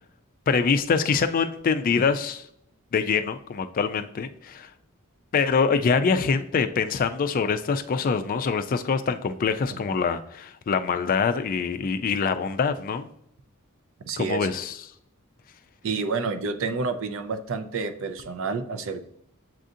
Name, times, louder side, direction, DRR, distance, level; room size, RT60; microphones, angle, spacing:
voice 1, 0.5-2.4 2.9-4.7 5.3-13.1 14.2-14.8, left 5 dB, 40° left, 9 dB, 0.3 m, -24 dB
voice 2, 14.0-14.5 15.8-19.0, right 4 dB, 65° right, 9 dB, 0.5 m, -29 dB
7.4 x 2.6 x 2.5 m, 0.74 s
head